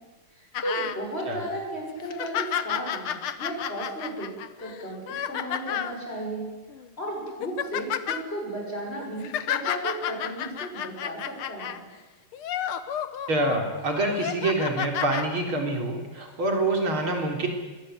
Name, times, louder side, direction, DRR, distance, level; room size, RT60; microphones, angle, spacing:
voice 1, 0.3-4.3 4.6-6.5 7.0-11.8, right 1 dB, 30° left, 0 dB, 7.2 m, -34 dB
sound 1, 0.5-1.0 1.5-1.6 2.0-6.0 6.7-6.9 7.3-8.2 9.0-11.8 12.3-13.6 14.1-15.3 16.2-16.3, left 10 dB, 85° left, 2.0 m, -31 dB
voice 2, 13.3-17.5, right 2 dB, 80° right, 2 dB, 4.2 m, -26 dB
24.0 x 21.0 x 8.0 m, 1.2 s
omnidirectional pair, 2.3 m